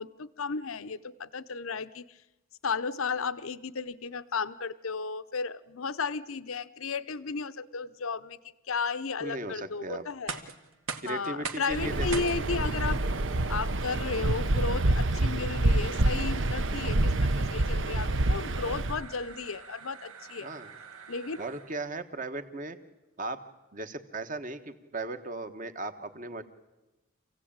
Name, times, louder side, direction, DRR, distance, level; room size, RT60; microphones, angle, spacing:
voice 1, 0.0-2.2 2.6-8.4 8.7-10.4 11.1-13.0 13.5-20.5 21.1-21.4, left 5 dB, 75° left, 14 dB, 0.7 m, -34 dB
voice 2, 9.2-10.0 11.0-12.3 20.4-20.7 21.4-22.8 23.2-23.4 23.7-26.4, right 2 dB, 40° right, 9 dB, 1.3 m, -37 dB
sound 1, 10.1-22.0, right 5 dB, 90° right, 2.0 m, -45 dB
Waves surf, 11.7-19.0, right 2 dB, 60° right, 0.9 m, -27 dB
27.0 x 16.5 x 8.8 m, 1.1 s
head